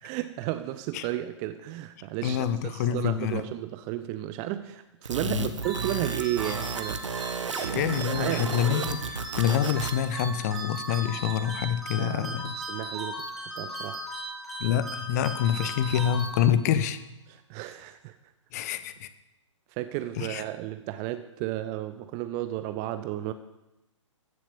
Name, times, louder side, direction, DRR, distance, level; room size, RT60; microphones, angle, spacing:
voice 1, 0.0-8.5 12.0-14.0 17.3-18.2 19.7-23.3, right 14 dB, 20° right, 11 dB, 0.4 m, -33 dB
voice 2, 2.2-3.4 5.2-5.5 7.5-12.6 14.6-17.0 18.5-19.1 20.2-20.4, left 9 dB, 30° left, 13 dB, 0.8 m, -27 dB
sound 1, 5.0-10.1, right 5 dB, 65° right, 1.2 m, -33 dB
sound 2, 5.6-16.8, right 2 dB, ahead, 2.3 m, -37 dB
14.5 x 7.4 x 6.9 m, 0.93 s
figure-of-eight pair, 125°, 17 cm